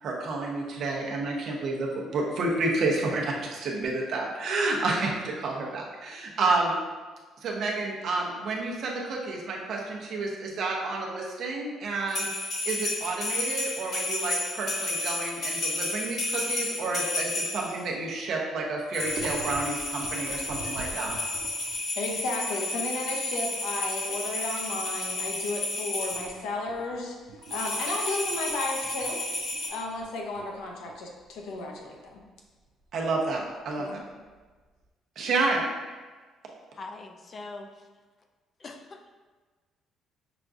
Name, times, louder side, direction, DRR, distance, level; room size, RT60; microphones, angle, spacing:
voice 1, 0.0-6.7 7.4-21.1 32.9-34.0 35.2-35.6, right 3 dB, 50° right, -2 dB, 0.7 m, -30 dB
sound 1, 12.1-17.8 18.9-26.3 27.4-29.7, left 2 dB, 55° left, 1.2 m, -32 dB
sound 2, 19.0-21.9 22.4-22.5 22.8-24.0 24.4-24.7 25.0-25.6 26.0-34.8, right 4 dB, 85° right, 0.4 m, -44 dB
voice 2, 22.0-29.2 29.7-32.2 33.8-34.0, left 2 dB, 85° left, 0 dB, 0.6 m, -34 dB
voice 3, 36.8-37.9 38.6-39.1, left 3 dB, 30° left, 4 dB, 0.3 m, -42 dB
5.8 x 2.3 x 2.5 m, 1.3 s
cardioid pair, 155°, 0 cm